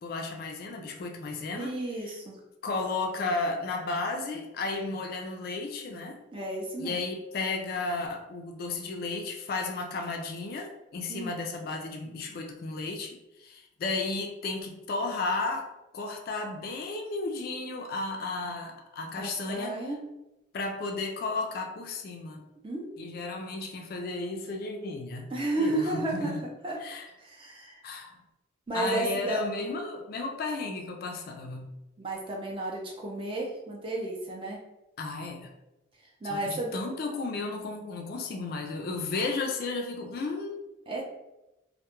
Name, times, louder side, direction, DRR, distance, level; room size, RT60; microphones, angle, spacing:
voice 1, 0.0-2.2 2.6-6.2 6.8-15.7 15.9-19.8 20.5-22.5 23.0-25.3 25.6-26.4 26.8-27.1 27.8-28.2 28.7-31.7 35.0-35.5 36.3-40.7, left 3 dB, 50° left, 2 dB, 0.3 m, -33 dB
voice 2, 1.5-2.4 6.3-7.0 11.1-11.3 19.2-20.0 22.6-23.2 25.3-26.3 26.6-26.8 27.2-27.8 28.7-29.4 32.0-34.6 36.2-36.8 40.9-41.0, right 2 dB, 25° right, -1 dB, 0.4 m, -32 dB
2.2 x 2.1 x 2.9 m, 0.95 s
head